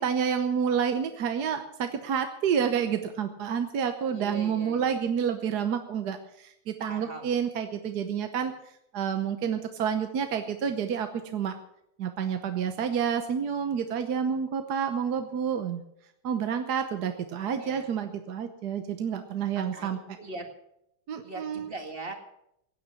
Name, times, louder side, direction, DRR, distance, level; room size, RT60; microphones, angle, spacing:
voice 1, 0.0-8.5 8.9-11.5 12.0-15.8 16.2-20.0 21.1-21.7, right 7 dB, 60° right, 7 dB, 1.3 m, -29 dB
voice 2, 4.1-5.0 6.9-7.3 17.5-17.9 19.7-20.5 21.2-22.1, right 2 dB, 30° right, 5 dB, 2.0 m, -40 dB
16.5 x 9.3 x 7.1 m, 0.78 s
omnidirectional pair, 2.2 m